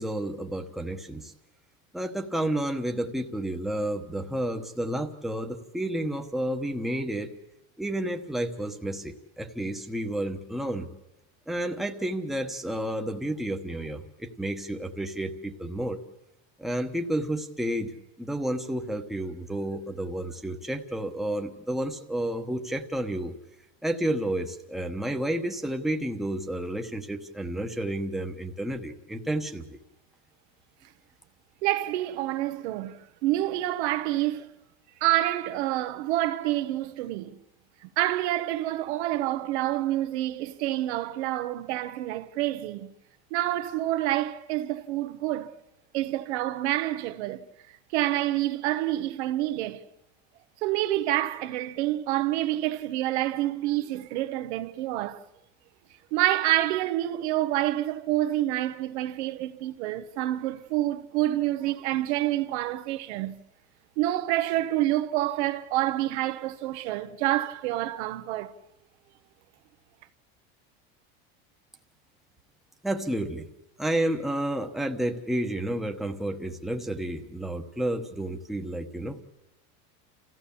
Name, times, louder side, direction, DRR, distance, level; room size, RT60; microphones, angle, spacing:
voice 1, 0.0-1.3 1.9-7.3 7.8-10.9 11.5-16.0 16.6-17.9 18.2-23.3 23.8-29.8 72.8-73.5 73.8-79.2, right 1 dB, ahead, 1.0 m, -31 dB
voice 2, 31.6-34.5 35.0-37.4 38.0-42.9 43.3-45.5 45.9-47.5 47.9-49.9 50.6-55.2 56.1-63.3 64.0-68.5, right 15 dB, 85° right, 1.2 m, -27 dB
30.0 x 15.0 x 7.0 m
cardioid pair, 165°, 32 cm